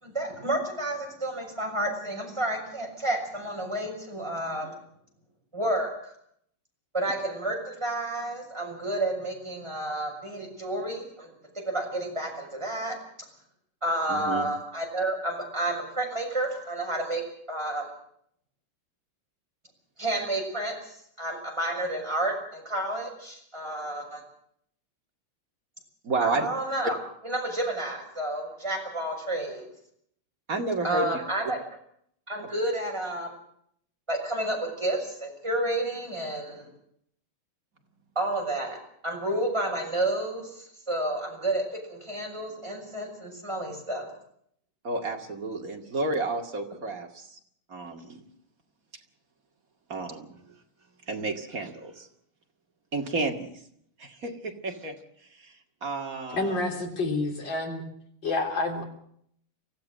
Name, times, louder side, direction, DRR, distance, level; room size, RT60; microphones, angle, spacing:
voice 1, 0.0-4.8 5.5-6.1 6.9-11.3 11.7-13.0 13.8-17.2 17.5-17.9 20.0-20.7 21.2-24.2 26.2-27.0 27.2-29.7 30.8-31.6 32.3-33.4 34.1-36.7 38.1-38.8 39.0-44.1, right 1 dB, 10° right, 1 dB, 6.3 m, -30 dB
voice 2, 14.1-14.5 26.0-26.5 30.5-31.1 44.8-47.4 47.7-48.3 49.9-50.6 51.1-52.1 52.9-53.5 54.0-55.0 55.3-56.6, right 2 dB, 40° right, 4 dB, 2.6 m, -31 dB
voice 3, 56.3-57.8 58.2-58.8, left 2 dB, 55° left, 3 dB, 4.2 m, -28 dB
24.5 x 15.5 x 7.6 m, 0.68 s
omnidirectional pair, 2.3 m